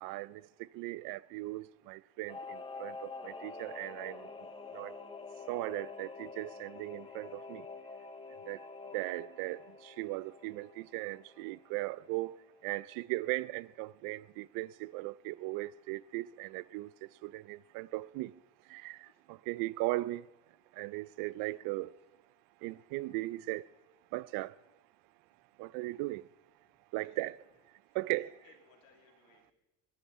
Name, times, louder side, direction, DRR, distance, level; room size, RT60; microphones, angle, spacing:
voice 1, 0.0-4.3 4.7-4.9 5.5-7.7 8.5-8.6 8.9-12.4 12.6-16.9 17.2-18.3 18.7-20.3 20.8-21.9 22.6-23.6 24.1-24.5 25.6-26.2 26.9-27.4 27.9-28.3, right 19 dB, 80° right, 0.5 m, -38 dB
Singing / Musical instrument, 2.3-12.3 12.6-12.7, left 4 dB, 15° left, 0.7 m, -47 dB
voice 2, 27.8-29.5, left 6 dB, 80° left, 3.1 m, -66 dB
21.5 x 9.6 x 4.2 m
cardioid pair, 170°, 34 cm